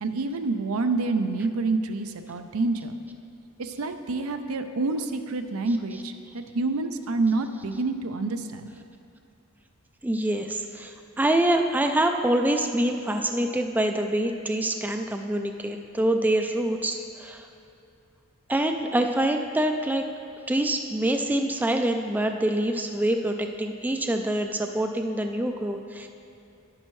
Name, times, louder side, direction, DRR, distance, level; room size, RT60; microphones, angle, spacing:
voice 1, 0.0-3.0 3.6-8.7, right 3 dB, 80° right, 8 dB, 0.6 m, -27 dB
voice 2, 10.0-17.5 18.5-20.1 20.5-26.1, right 1 dB, 10° right, 5 dB, 0.3 m, -25 dB
11.0 x 9.9 x 3.1 m, 2.7 s
head